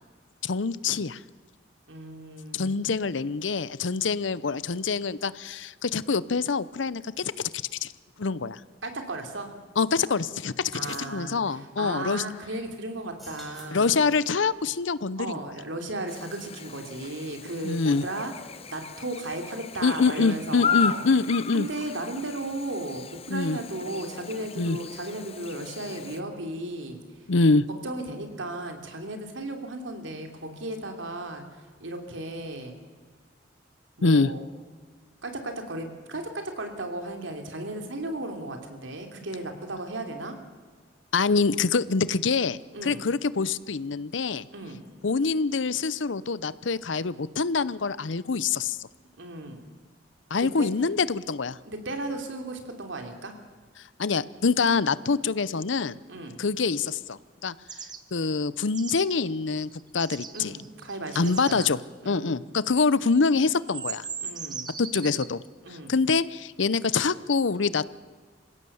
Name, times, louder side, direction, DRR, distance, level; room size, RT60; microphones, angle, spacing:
voice 1, 0.4-1.2 2.5-7.3 7.8-7.9 8.2-8.6 9.8-12.2 13.7-15.4 17.6-18.0 19.8-21.7 23.3-23.6 24.6-24.8 27.3-27.6 34.0-34.3 41.1-44.5 45.0-48.9 50.3-51.6 54.0-56.0 56.4-57.5 58.1-60.5 61.2-61.8 62.1-64.0 64.8-65.4 65.9-67.8, left 4 dB, 80° left, 17 dB, 0.7 m, -25 dB
voice 2, 1.9-2.8 8.8-9.6 10.7-14.0 15.2-21.1 21.5-27.0 27.8-32.8 34.0-34.4 35.2-40.3 42.7-43.0 44.5-44.8 49.2-49.7 50.4-50.7 51.7-53.4 56.1-56.4 60.3-61.7 62.0-62.4 64.2-64.7 65.6-65.9, right 2 dB, 85° right, 4 dB, 3.1 m, -35 dB
sound 1, 10.2-10.3 10.6-11.1 13.1-14.4, left 1 dB, ahead, 5.1 m, -49 dB
Chirp tweet / Buzz, 16.1-26.2, left 7 dB, 30° left, 0.9 m, -35 dB
sound 2, 57.7-58.0 58.7-59.2 59.6-61.7 63.1-63.2 63.6-65.3, right 6 dB, 20° right, 1.3 m, -38 dB
27.0 x 16.5 x 7.0 m, 1.5 s
head